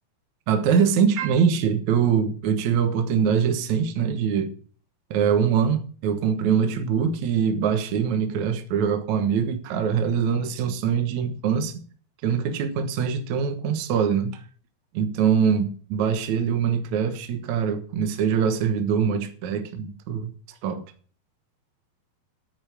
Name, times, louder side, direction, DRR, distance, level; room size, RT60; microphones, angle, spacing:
voice 1, 0.5-4.5 5.1-11.8 12.2-14.4 14.9-20.3 20.6-20.8, right 7 dB, 60° right, 2.3 m, -23 dB
9.4 x 8.9 x 7.1 m
omnidirectional pair, 4.3 m